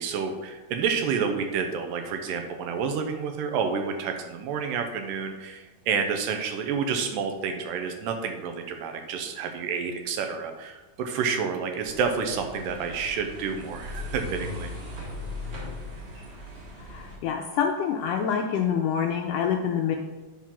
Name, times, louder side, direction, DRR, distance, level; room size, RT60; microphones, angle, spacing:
voice 1, 0.0-14.7, right 6 dB, 80° right, 5 dB, 2.2 m, -29 dB
sound 1, 11.8-17.2, left 2 dB, 50° right, 1.5 m, -38 dB
voice 2, 16.9-20.0, left 7 dB, 80° left, 3 dB, 1.9 m, -26 dB
7.3 x 3.7 x 5.7 m, 1.2 s
omnidirectional pair, 4.1 m